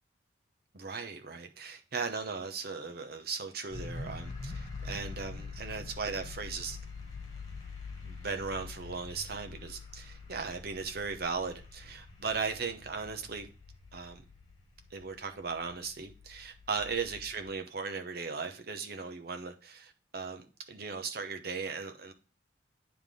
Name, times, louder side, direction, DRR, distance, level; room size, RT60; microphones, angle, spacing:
voice 1, 0.7-6.8 8.0-13.5 13.9-14.2 14.9-22.1, right 5 dB, 50° right, 0.9 m, -37 dB
sound 1, 3.7-17.5, left 3 dB, 20° left, 1.7 m, -45 dB
9.4 x 3.5 x 3.6 m
head